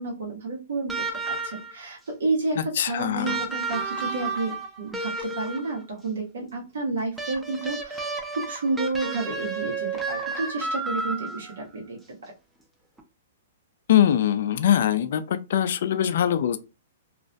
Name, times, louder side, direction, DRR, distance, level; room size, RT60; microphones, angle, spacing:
voice 1, 0.0-12.3, right 3 dB, 80° right, 0.9 m, -31 dB
sound 1, 0.9-1.8 3.2-5.8 7.2-11.6 13.0-13.1, right 3 dB, 5° right, 0.4 m, -32 dB
voice 2, 2.6-3.4 13.9-16.6, left 10 dB, 65° left, 0.3 m, -22 dB
2.4 x 2.1 x 2.5 m
hypercardioid pair, 135°, 0 cm